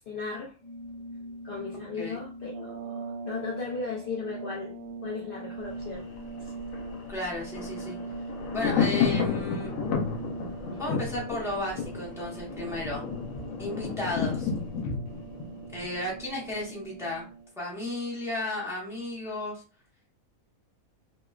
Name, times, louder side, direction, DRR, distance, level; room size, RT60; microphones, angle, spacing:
voice 1, 0.1-0.5 1.4-4.7 5.0-6.1 6.4-6.5, left 4 dB, 90° left, -2 dB, 0.4 m, -36 dB
Organ, 0.6-10.8, left 1 dB, 45° left, 0.6 m, -42 dB
sound 1, 2.4-17.6, right 8 dB, 80° right, 0.4 m, -44 dB
Thunder, 5.6-16.6 16.9-17.0, left 6 dB, 70° left, 0.9 m, -32 dB
voice 2, 7.1-8.0 8.5-9.7 10.8-13.0 13.6-14.5 15.7-17.3 17.6-19.6, left 1 dB, 5° right, -4 dB, 0.4 m, -33 dB
2.9 x 2.1 x 2.3 m, 0.35 s
omnidirectional pair, 1.5 m